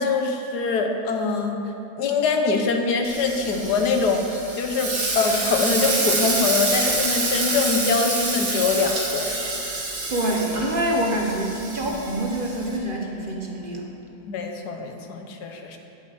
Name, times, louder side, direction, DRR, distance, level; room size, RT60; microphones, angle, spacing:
voice 1, 0.0-1.6 2.0-9.5 14.3-15.8, left 4 dB, 90° left, 4 dB, 1.5 m, -23 dB
Frying (food), 3.0-12.8, right 2 dB, 85° right, 2.2 m, -27 dB
voice 2, 10.1-13.9, right 1 dB, 40° right, 0 dB, 1.0 m, -26 dB
8.1 x 7.4 x 7.9 m, 2.9 s
omnidirectional pair, 1.7 m